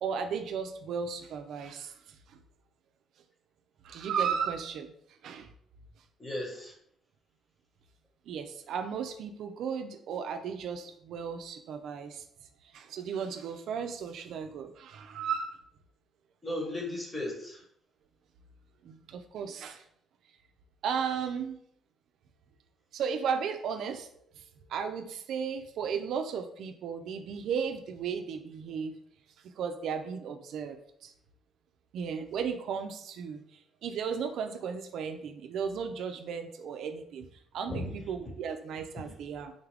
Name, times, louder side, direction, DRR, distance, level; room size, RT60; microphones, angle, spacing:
voice 1, 0.0-1.9 2.3-2.4 3.8-4.9 5.2-5.5 8.3-12.2 12.7-15.6 18.8-19.8 20.8-21.6 22.9-24.1 24.4-24.5 24.7-29.0 29.4-31.1 31.9-33.4 33.8-37.3 37.5-39.5, right 6 dB, 75° right, 7 dB, 0.3 m, -35 dB
voice 2, 6.2-6.7 16.4-17.6 37.7-37.9, left 1 dB, 20° left, -1 dB, 1.1 m, -35 dB
3.8 x 2.3 x 3.3 m, 0.69 s
cardioid pair, 90°, 0 cm